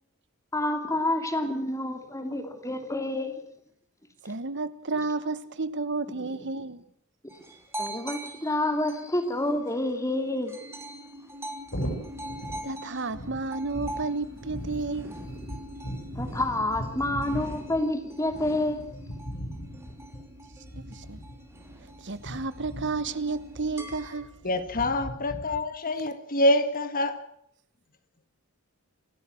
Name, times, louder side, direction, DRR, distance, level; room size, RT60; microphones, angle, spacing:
voice 1, 0.5-3.4 6.1-6.4 7.2-7.4 7.8-10.5 16.1-18.9, left 1 dB, 15° left, 2.8 m, -29 dB
voice 2, 4.2-6.8 12.6-15.1 20.8-21.2 22.0-24.3, right 3 dB, 55° right, 1.2 m, -32 dB
sound 1, 7.3-10.0 10.5-24.2, right 1 dB, 10° right, 3.4 m, -43 dB
sound 2, 8.9-23.9, left 1 dB, 30° right, 5.1 m, -48 dB
sound 3, 11.7-25.6, equal, 60° left, 5.9 m, -39 dB
voice 3, 24.4-27.2, left 1 dB, 40° left, 1.8 m, -26 dB
27.0 x 13.0 x 7.8 m
head